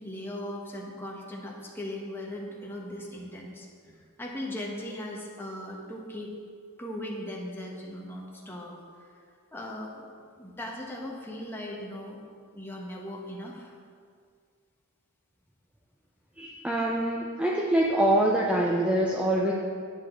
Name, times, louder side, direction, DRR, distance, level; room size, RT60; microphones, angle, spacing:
voice 1, 0.0-6.4 6.8-9.1 9.5-10.0 10.3-12.2 12.5-13.7 16.4-16.5, left 1 dB, 10° left, -2 dB, 1.3 m, -38 dB
voice 2, 16.4-19.5, right 1 dB, 5° right, -3 dB, 0.6 m, -25 dB
10.5 x 8.4 x 3.8 m, 2.1 s
head